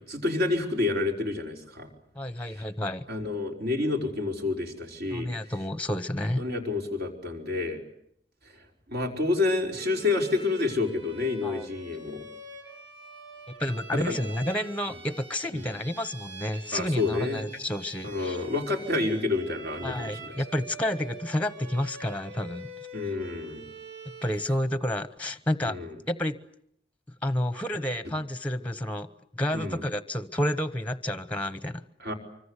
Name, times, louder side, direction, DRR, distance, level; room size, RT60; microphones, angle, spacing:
voice 1, 0.0-1.9 3.1-5.5 6.4-7.8 8.9-12.2 13.9-14.1 15.5-15.7 16.7-17.4 18.0-20.3 22.9-23.7 25.6-25.9 29.5-29.8 32.0-32.1, left 3 dB, 60° right, 2 dB, 5.0 m, -29 dB
voice 2, 2.1-3.0 5.1-6.4 11.4-11.7 13.6-18.4 19.8-22.7 24.2-25.8 26.1-26.3 27.2-29.1 29.3-31.8, left 1 dB, 10° left, 13 dB, 1.0 m, -30 dB
Bowed string instrument, 9.7-24.6, right 3 dB, 80° right, 7.9 m, -45 dB
25.0 x 25.0 x 8.3 m, 0.71 s
head